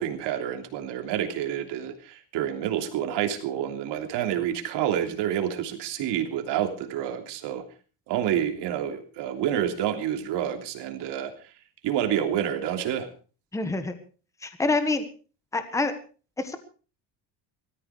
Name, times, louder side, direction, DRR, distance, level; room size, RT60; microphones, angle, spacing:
voice 1, 0.0-7.6 8.1-11.5 11.8-13.1, right 10 dB, 65° right, 5 dB, 3.2 m, -28 dB
voice 2, 13.5-14.0 14.4-15.1 15.5-15.9 16.4-16.6, left 3 dB, 5° left, 9 dB, 1.4 m, -26 dB
18.5 x 14.0 x 4.8 m, 0.38 s
cardioid pair, 175°, 45 cm